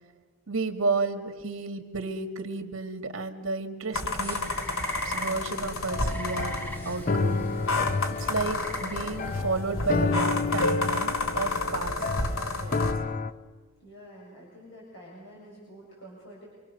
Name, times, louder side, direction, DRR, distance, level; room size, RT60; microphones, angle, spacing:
voice 1, 0.5-4.4 5.0-6.6 6.9-7.5 8.2-12.1 12.6-12.8, right 3 dB, 70° right, 6 dB, 2.2 m, -32 dB
sound 1, 3.9-12.9, left 2 dB, 80° left, 2.3 m, -31 dB
sound 2, 4.2-9.3, right 1 dB, 10° left, 2.5 m, -41 dB
sound 3, 5.9-13.3, left 3 dB, 40° left, 0.8 m, -30 dB
voice 2, 13.8-16.5, equal, 60° left, -4 dB, 6.8 m, -48 dB
27.5 x 25.0 x 6.8 m, 1.4 s
head